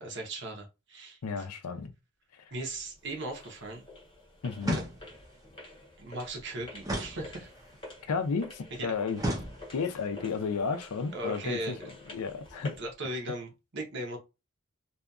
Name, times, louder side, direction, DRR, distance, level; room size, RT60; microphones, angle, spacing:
voice 1, 0.0-1.2 2.5-3.8 4.7-4.8 6.0-7.5 8.8-8.9 11.1-11.8 12.8-14.2, right 1 dB, 55° right, 0.9 m, -37 dB
voice 2, 1.2-1.9 2.3-2.5 4.4-4.8 8.0-9.2 9.7-12.8, left 5 dB, 80° left, 0.5 m, -33 dB
sound 1, 2.7-12.9, left 2 dB, 20° left, 1.0 m, -49 dB
sound 2, 4.6-5.4 6.8-7.8 9.2-10.0, equal, 15° right, 0.6 m, -35 dB
2.7 x 2.4 x 2.3 m
head